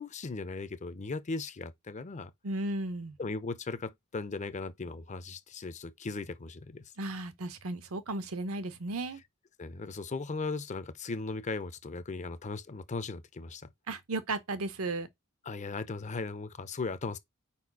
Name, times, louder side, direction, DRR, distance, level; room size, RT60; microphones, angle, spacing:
voice 1, 0.0-2.3 3.2-6.8 9.6-13.7 15.5-17.2, left 3 dB, 35° left, 0.6 m, -37 dB
voice 2, 2.4-3.2 7.0-9.2 13.9-15.1, right 2 dB, 80° right, 0.9 m, -35 dB
4.8 x 4.2 x 4.7 m
head